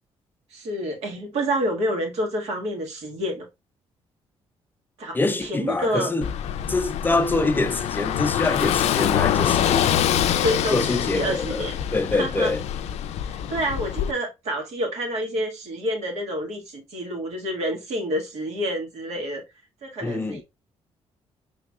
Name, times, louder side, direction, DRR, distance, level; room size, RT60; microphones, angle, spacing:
voice 1, 0.5-3.4 5.0-6.1 10.4-11.8 12.1-12.5 13.2-19.4 19.8-20.4, equal, 75° right, 1.7 m, -28 dB
voice 2, 5.1-6.3 6.7-9.9 10.7-11.6 11.9-12.6 20.0-20.4, left 3 dB, 20° left, 0.6 m, -25 dB
Car passing by / Engine, 6.2-14.1, left 10 dB, 80° left, 0.4 m, -25 dB
5.1 x 3.6 x 2.3 m
cardioid pair, 110°, 11 cm